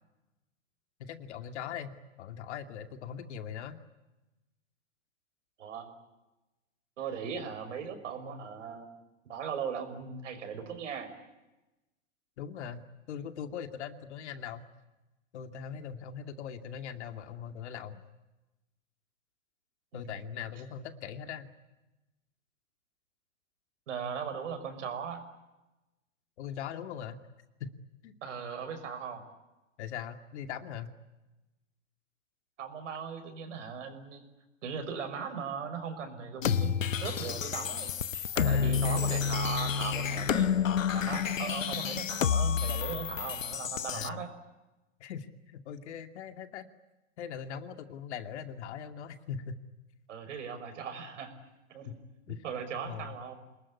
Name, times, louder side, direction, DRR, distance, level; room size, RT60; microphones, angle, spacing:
voice 1, 1.0-3.8 12.4-14.7 15.3-18.0 19.9-21.5 26.4-27.2 27.6-27.8 28.0-28.1 29.8-30.9 38.4-38.8 43.9-44.2 45.0-46.7 47.2-49.6 51.9-52.0 52.3-52.4 52.8-53.2, left 8 dB, 60° left, 8 dB, 2.6 m, -41 dB
voice 2, 5.6-5.9 7.0-8.9 9.2-11.1 19.9-20.4 23.9-25.2 28.2-29.2 32.6-34.2 34.6-37.9 38.3-40.5 40.9-44.3 50.1-51.3 51.7-52.0 52.4-53.3, right 6 dB, 70° right, 8 dB, 6.1 m, -38 dB
sound 1, 36.4-44.1, left 7 dB, 85° left, 1.1 m, -29 dB
28.0 x 20.5 x 9.8 m, 1.0 s
hypercardioid pair, 115°, 38 cm